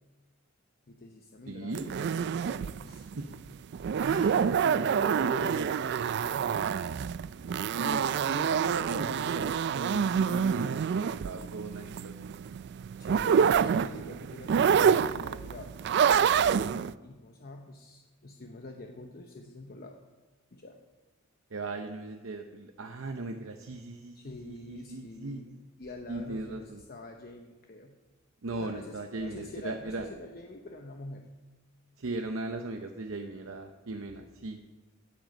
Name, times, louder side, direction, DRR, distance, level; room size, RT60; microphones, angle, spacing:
voice 1, 0.9-3.1 6.0-6.8 13.0-15.7 16.1-20.0 20.5-20.8 24.1-27.9 28.6-31.3, left 2 dB, 45° left, 3 dB, 0.8 m, -46 dB
voice 2, 1.5-1.9 3.2-3.3 4.0-5.8 7.8-12.1 21.5-25.4 26.1-26.8 28.4-30.1 32.0-34.6, right 2 dB, 70° right, 5 dB, 0.8 m, -37 dB
sound 1, 1.7-16.9, right 7 dB, 55° right, 0.3 m, -27 dB
16.5 x 7.8 x 5.3 m, 1.2 s
head